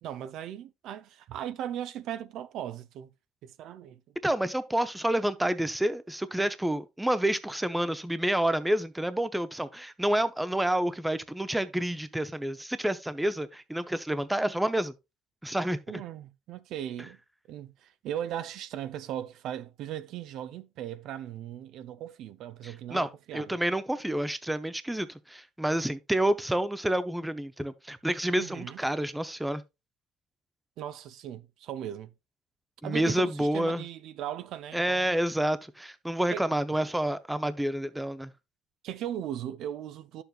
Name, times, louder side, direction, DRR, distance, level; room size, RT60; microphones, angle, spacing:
voice 1, 0.0-3.1 3.4-4.0 15.9-17.2 17.5-23.6 28.4-28.8 30.8-32.1 32.8-35.2 36.3-36.5 38.8-40.2, right 10 dB, 65° right, 0.5 m, -38 dB
voice 2, 4.2-14.9 15.4-16.0 22.6-29.6 32.8-33.8 34.7-38.3, right 1 dB, 5° right, 0.6 m, -29 dB
10.5 x 7.0 x 2.3 m
cardioid pair, 110°, 0 cm